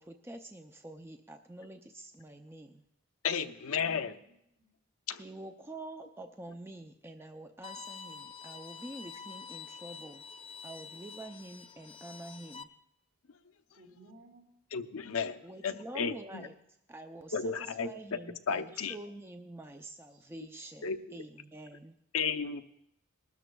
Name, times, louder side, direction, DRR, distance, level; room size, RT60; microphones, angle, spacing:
voice 1, 0.0-2.8 5.2-10.2 10.6-12.7 15.4-16.6 16.9-21.9, right 1 dB, 10° right, 6 dB, 0.4 m, -47 dB
voice 2, 3.2-4.1 5.1-5.2 14.7-16.5 17.3-17.9 18.5-18.9 20.8-21.2 22.1-22.6, left 6 dB, 80° left, 9 dB, 0.6 m, -33 dB
voice 3, 3.8-4.7 5.2-5.3 13.7-14.5 20.1-20.3, right 1 dB, 70° right, -3 dB, 4.0 m, -58 dB
Bowed string instrument, 7.6-12.6, left 6 dB, 25° left, 0.7 m, -47 dB
20.0 x 13.0 x 2.3 m, 0.78 s
head